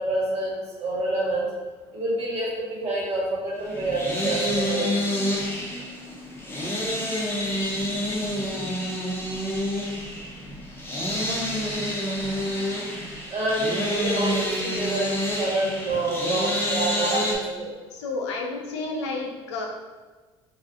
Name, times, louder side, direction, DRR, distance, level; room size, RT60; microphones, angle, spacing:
voice 1, 0.0-1.5 1.9-5.0 13.3-17.7, right 2 dB, 45° right, -5 dB, 1.4 m, -27 dB
sound 1, 3.6-17.4, equal, 15° left, 0.8 m, -28 dB
voice 2, 17.9-19.6, left 3 dB, 85° left, 1 dB, 0.5 m, -31 dB
3.2 x 2.3 x 2.7 m, 1.3 s
hypercardioid pair, 70°, 14 cm